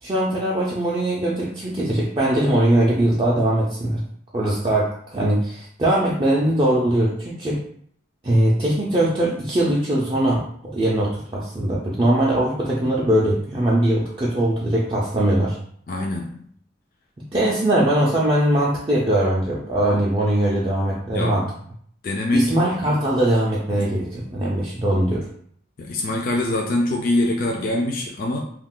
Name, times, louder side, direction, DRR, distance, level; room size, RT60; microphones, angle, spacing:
voice 1, 0.0-4.0 4.3-7.6 8.2-15.6 17.3-21.4 22.3-25.3, right 1 dB, 25° right, -6 dB, 0.4 m, -21 dB
voice 2, 15.9-16.4 21.1-21.5 22.0-22.5 23.8-23.9 25.8-28.4, left 1 dB, 50° left, 0 dB, 0.4 m, -24 dB
2.3 x 2.3 x 3.6 m, 0.62 s
head